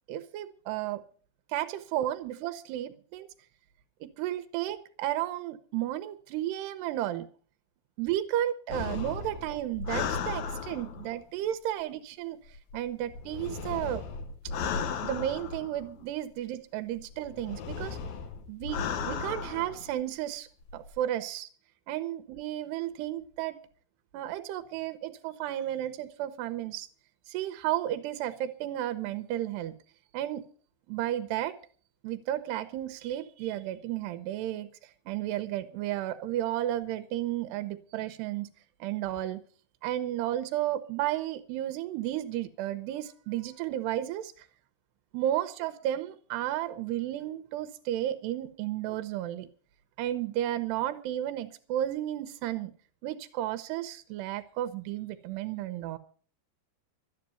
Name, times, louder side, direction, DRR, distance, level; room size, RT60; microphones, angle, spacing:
voice 1, 0.1-1.0 1.5-3.3 4.0-7.3 8.0-12.4 12.7-14.0 15.0-18.0 18.5-20.5 20.7-21.5 21.9-23.6 24.1-26.9 27.3-29.7 30.1-30.4 30.9-31.6 32.0-38.5 38.8-39.4 39.8-44.5 45.1-49.5 50.0-52.7 53.0-56.0, right 13 dB, 90° right, 10 dB, 3.0 m, -33 dB
sound 1, 8.7-11.2 12.5-16.1 17.0-19.9 20.6-21.0, left 5 dB, 70° left, 1.8 m, -36 dB
13.0 x 10.0 x 7.0 m, 0.43 s
omnidirectional pair, 4.6 m